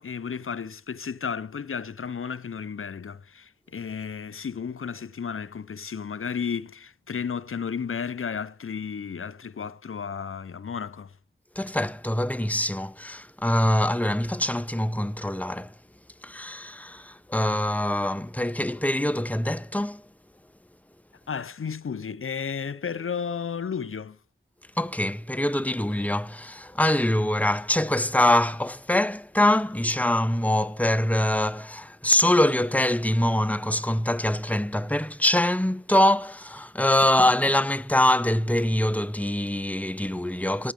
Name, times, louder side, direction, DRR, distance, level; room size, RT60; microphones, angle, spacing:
voice 1, 0.0-11.1 21.3-24.2, left 6 dB, 90° left, 0.6 m, -33 dB
voice 2, 11.6-15.7 16.2-20.0 24.8-40.7, left 1 dB, 5° left, 0.8 m, -24 dB
14.0 x 10.5 x 5.2 m
wide cardioid pair, 50°, 21 cm